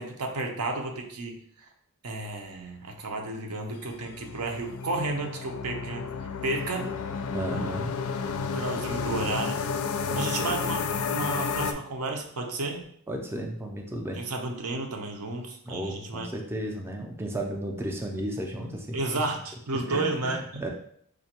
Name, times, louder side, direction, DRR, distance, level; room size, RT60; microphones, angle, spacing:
voice 1, 0.0-1.7 2.0-6.1 6.4-6.9 7.5-7.8 8.5-9.6 10.2-12.8 14.2-16.3 18.9-20.6, right 2 dB, 75° right, 3 dB, 0.6 m, -32 dB
sound 1, 3.9-11.7, left 5 dB, 70° left, 0.4 m, -31 dB
voice 2, 7.3-7.9 10.1-10.5 13.1-14.2 15.6-19.0 19.9-20.7, right 1 dB, 10° right, 1 dB, 0.4 m, -34 dB
4.9 x 2.2 x 2.8 m, 0.65 s
head